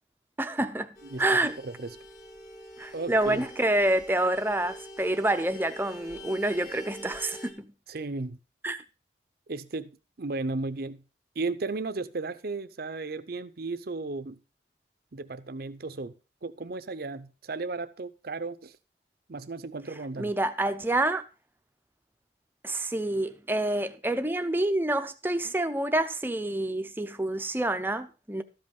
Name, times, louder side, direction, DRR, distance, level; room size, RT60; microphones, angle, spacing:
voice 1, 0.4-1.6 2.8-7.7 8.6-8.8 20.2-21.2 22.6-28.4, right 1 dB, 10° right, 0.6 m, -27 dB
Vehicle horn car horn honking, 0.9-7.5, equal, 40° left, 2.1 m, -45 dB
voice 2, 1.1-2.0 2.9-3.5 7.9-8.4 9.5-11.0 11.4-14.4 15.1-16.1 16.4-18.8 19.3-20.3, right 3 dB, 55° right, 0.6 m, -35 dB
13.0 x 5.5 x 5.2 m
head